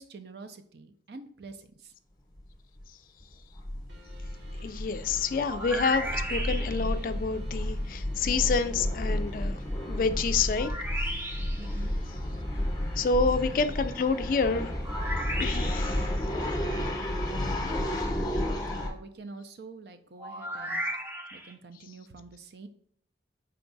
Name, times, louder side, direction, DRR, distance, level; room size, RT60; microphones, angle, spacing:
voice 1, 0.0-1.9 7.8-7.9 11.6-11.9 13.0-13.2 17.6-18.5 18.7-20.8 21.3-22.7, right 3 dB, 60° right, 9 dB, 0.5 m, -46 dB
sound 1, 2.4-2.5 2.8-2.9 3.2-18.9, left 1 dB, 20° left, 0.8 m, -32 dB
sound 2, 3.9-18.9, left 1 dB, 85° right, 1.0 m, -53 dB
voice 2, 4.6-9.6 9.9-10.7 11.1-11.2 13.0-14.7 15.4-16.0, left 4 dB, 50° left, 10 dB, 0.3 m, -28 dB
sound 3, 5.4-7.0 10.5-11.7 14.8-16.1 20.2-21.5, right 1 dB, 10° right, 0.5 m, -35 dB
4.4 x 2.3 x 3.8 m, 0.66 s
head